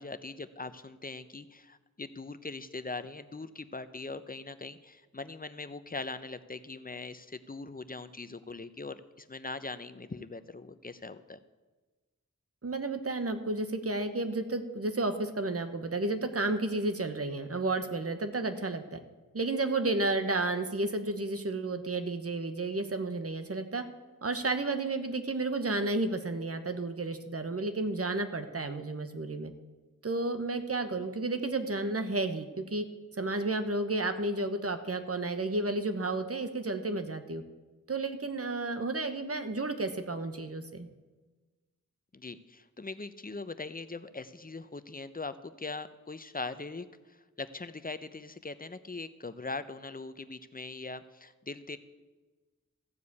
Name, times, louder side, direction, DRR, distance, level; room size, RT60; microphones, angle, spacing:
voice 1, 0.0-11.4 42.1-51.8, left 3 dB, 30° left, 12 dB, 0.7 m, -41 dB
voice 2, 12.6-19.0 19.3-23.8 24.2-29.5 30.0-32.8 33.2-37.4 37.9-40.9, right 2 dB, 50° right, 8 dB, 1.1 m, -32 dB
14.5 x 5.0 x 8.2 m, 1.3 s
wide cardioid pair, 60°, 31 cm